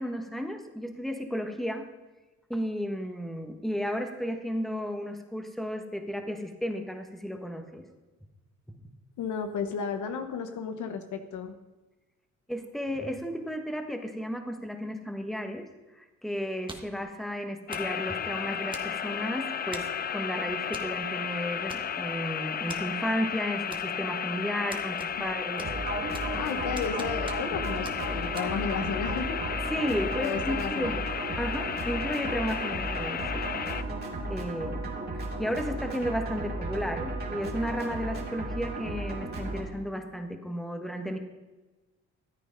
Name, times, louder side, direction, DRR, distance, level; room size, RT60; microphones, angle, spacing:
voice 1, 0.0-1.9 2.5-7.8 12.5-15.7 15.9-25.7 29.7-31.0 31.4-33.5 34.3-41.2, equal, ahead, 5 dB, 1.4 m, -33 dB
voice 2, 9.2-11.6 26.3-29.4 30.2-31.1, left 6 dB, 75° left, 8 dB, 1.1 m, -33 dB
sound 1, 16.7-17.0 17.7-18.0 18.7-19.2 19.7-20.0 20.7-20.9 21.2-21.3 21.7-22.2 22.7-22.8 23.7-24.2 24.7-25.3 25.6-26.4 26.8-27.6 27.8-28.0 28.4-28.5, right 2 dB, 15° right, 1.4 m, -43 dB
sound 2, 17.7-33.8, left 8 dB, 30° left, 0.4 m, -33 dB
sound 3, 25.6-39.6, right 2 dB, 35° right, 2.6 m, -35 dB
13.5 x 8.2 x 5.3 m, 1.1 s
cardioid pair, 90°, 30 cm